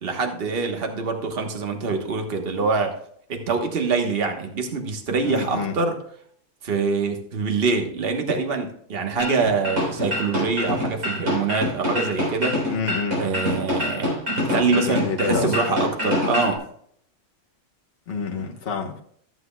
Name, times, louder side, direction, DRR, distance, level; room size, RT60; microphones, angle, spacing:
voice 1, 0.0-2.9 3.3-5.9 6.6-12.6 13.2-16.6, right 4 dB, 45° right, 4 dB, 1.4 m, -24 dB
voice 2, 5.2-5.8 12.7-13.2 14.5-15.8 18.1-19.0, left 5 dB, 45° left, -1 dB, 1.2 m, -28 dB
sound 1, 9.2-16.6, left 1 dB, 75° right, 4.1 m, -26 dB
14.5 x 7.8 x 2.3 m, 0.63 s
omnidirectional pair, 1.5 m